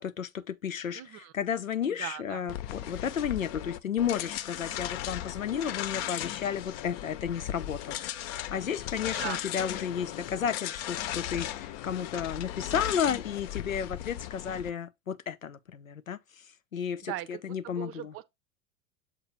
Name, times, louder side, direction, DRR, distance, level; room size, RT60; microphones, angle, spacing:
voice 1, 0.0-16.4 16.7-18.1, left 8 dB, 85° left, 0.7 m, -33 dB
voice 2, 0.9-1.3 1.9-2.5 9.1-9.4 17.0-18.2, right 14 dB, 35° right, 0.7 m, -39 dB
sound 1, 2.5-14.7, left 12 dB, 50° left, 0.8 m, -37 dB
7.4 x 2.7 x 5.3 m
figure-of-eight pair, 85°, 39 cm